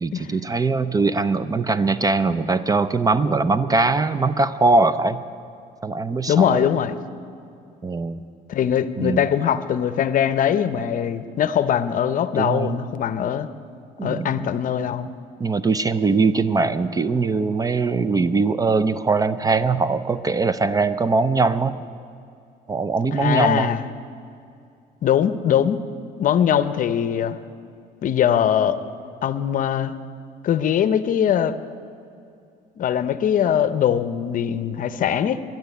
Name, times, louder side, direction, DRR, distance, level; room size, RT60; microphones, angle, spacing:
voice 1, 0.0-5.2 5.8-6.7 7.8-8.2 9.0-9.2 12.4-12.8 14.0-14.5 15.4-21.7 22.7-23.7, right 3 dB, 20° right, 14 dB, 0.5 m, -21 dB
voice 2, 6.3-7.0 8.5-13.5 14.0-15.1 23.1-23.9 25.0-25.8 26.2-27.4 28.0-28.8 29.2-29.9 30.4-31.5 32.8-35.4, left 9 dB, 50° left, 13 dB, 0.7 m, -21 dB
12.0 x 10.5 x 9.3 m, 2.5 s
cardioid pair, 110°, 17 cm